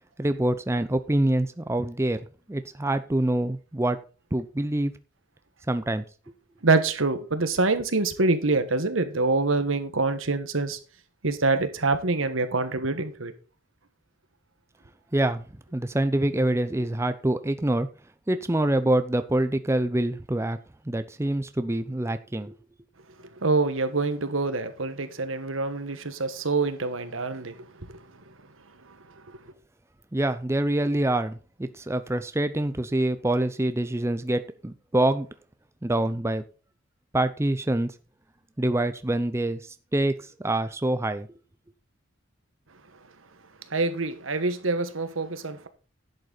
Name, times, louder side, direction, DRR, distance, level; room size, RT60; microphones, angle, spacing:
voice 1, 0.2-2.2 2.5-4.0 4.3-4.9 5.7-6.0 15.1-15.4 15.7-17.9 18.3-20.6 20.9-22.5 30.1-35.3 35.8-36.4 37.1-37.9 38.6-39.6 39.9-40.1 40.4-41.3, right 1 dB, 15° right, 0.5 m, -25 dB
voice 2, 6.6-10.8 11.2-13.3 23.4-27.6 43.7-45.7, right 3 dB, 90° right, 1.4 m, -25 dB
11.0 x 7.9 x 4.0 m
head